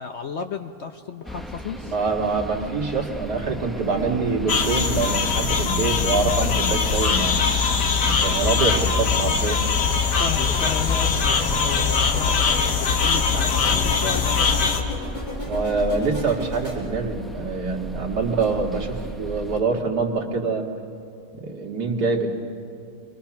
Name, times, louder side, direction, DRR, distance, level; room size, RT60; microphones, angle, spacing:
voice 1, 0.0-1.9 10.1-14.7, left 6 dB, 55° left, 6 dB, 0.8 m, -33 dB
sound 1, 1.2-19.6, equal, ahead, 0.4 m, -34 dB
voice 2, 1.8-7.4 8.0-9.6 15.4-20.7 21.4-22.3, right 4 dB, 75° right, 1 dB, 2.4 m, -25 dB
sound 2, 4.5-14.8, left 6 dB, 80° left, 1.9 m, -22 dB
sound 3, 8.8-16.8, left 1 dB, 25° left, 5.4 m, -36 dB
29.0 x 23.0 x 5.9 m, 2.5 s
omnidirectional pair, 1.7 m